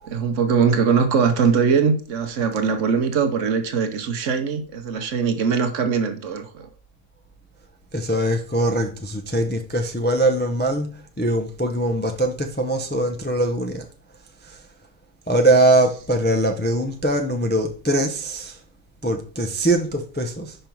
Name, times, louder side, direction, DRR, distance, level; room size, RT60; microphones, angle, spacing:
voice 1, 0.1-6.7, right 6 dB, 65° right, 1.1 m, -21 dB
voice 2, 7.9-13.9 14.4-14.6 15.3-18.6 19.0-20.6, right 1 dB, 15° left, 0.4 m, -22 dB
5.4 x 5.3 x 4.5 m
omnidirectional pair, 1.5 m